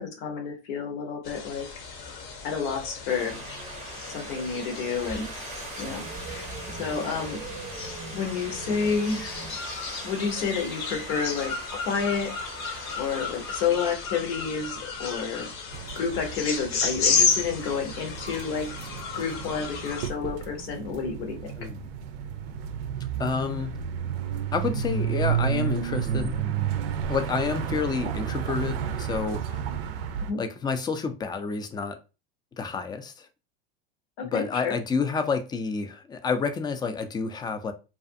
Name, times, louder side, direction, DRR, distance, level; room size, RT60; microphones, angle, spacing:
voice 1, 0.0-1.7 2.4-3.4 4.1-5.3 5.8-6.1 6.4-7.4 8.1-9.4 10.0-12.4 12.7-15.5 16.0-18.7 19.1-21.5 30.2-30.4 34.2-34.8, left 6 dB, 75° left, 0.8 m, -30 dB
sound 1, 1.2-20.1, left 5 dB, 45° left, 0.7 m, -33 dB
sound 2, 3.1-13.7, right 4 dB, 25° right, 0.6 m, -41 dB
sound 3, 15.7-30.3, right 8 dB, 80° right, 0.5 m, -31 dB
voice 2, 21.6-21.9 23.2-23.7 24.5-26.4 27.1-29.6 30.4-32.0 32.6-33.3 34.2-37.7, left 5 dB, 15° left, 0.3 m, -29 dB
2.4 x 2.4 x 2.5 m
supercardioid pair, 105°, 29 cm